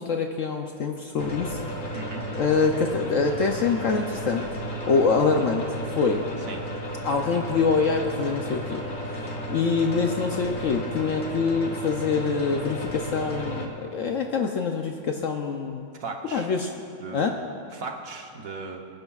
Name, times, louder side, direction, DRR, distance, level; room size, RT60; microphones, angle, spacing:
voice 1, 0.0-1.6 2.3-4.4 4.9-5.6 6.0-6.2 7.0-8.8 9.1-9.2 9.5-15.9 16.3-16.7 17.1-17.4, left 5 dB, 65° left, 3 dB, 0.8 m, -25 dB
sound 1, 1.2-13.7, equal, 35° left, 1.1 m, -33 dB
voice 2, 1.9-2.3 6.5-6.6 16.0-16.5 17.0-17.3 17.7-18.9, right 3 dB, 60° right, 3 dB, 1.2 m, -37 dB
23.5 x 10.5 x 2.4 m, 2.4 s
omnidirectional pair, 1.8 m